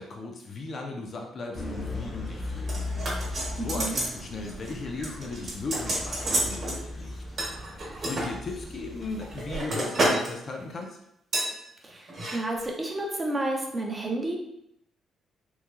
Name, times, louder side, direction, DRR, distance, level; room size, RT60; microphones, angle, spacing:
voice 1, 0.0-2.9 3.5-7.2 8.0-11.0, left 3 dB, 50° left, 2 dB, 0.5 m, -37 dB
sound 1, 1.5-9.5, left 2 dB, 20° left, 0.8 m, -37 dB
sound 2, 2.7-4.2 4.5-4.7 5.0-6.8 7.4-8.3 8.9-10.3 10.6-10.8 11.3-11.5 12.1-12.4 12.6-12.7, right 1 dB, 50° right, 1.0 m, -29 dB
voice 2, 3.6-4.0 11.8-14.4, right 1 dB, 25° right, 0 dB, 0.5 m, -31 dB
3.1 x 2.2 x 2.2 m, 0.79 s
cardioid pair, 90°, 0 cm